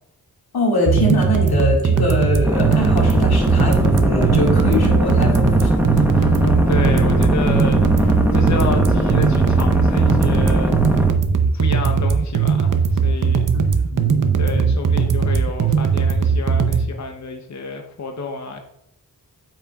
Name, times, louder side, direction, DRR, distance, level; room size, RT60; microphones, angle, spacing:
voice 1, 0.5-5.7 13.5-14.7, left 1 dB, 85° left, -1 dB, 2.0 m, -22 dB
sound 1, 0.8-16.8, right 6 dB, 55° right, 0.7 m, -18 dB
sound 2, 2.4-11.1, equal, 5° right, 0.9 m, -20 dB
voice 2, 6.1-11.0 11.3-13.4 13.7-13.8 14.4-18.6, left 3 dB, 50° left, 4 dB, 0.8 m, -30 dB
8.7 x 6.2 x 2.3 m, 0.76 s
wide cardioid pair, 70°, 36 cm